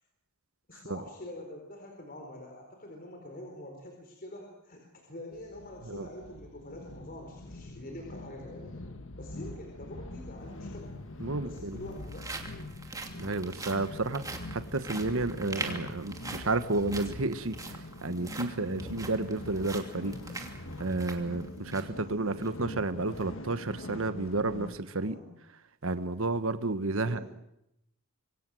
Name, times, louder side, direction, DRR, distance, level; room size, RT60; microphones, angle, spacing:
voice 1, 0.7-8.7 9.2-11.0 11.4-12.3 25.0-25.3 27.0-27.2, left 1 dB, 40° left, 2 dB, 4.3 m, -45 dB
sound 1, 5.3-24.8, left 2 dB, 60° left, 1.7 m, -44 dB
sound 2, 10.4-10.5 11.4-22.0 22.4-22.5 23.0-23.2, right 3 dB, 15° right, 2.7 m, -43 dB
voice 2, 11.2-11.8 13.2-14.2 14.5-20.2 20.8-25.2 25.8-27.2, right 2 dB, 65° right, 11 dB, 1.3 m, -31 dB
26.0 x 23.5 x 7.7 m, 0.83 s
head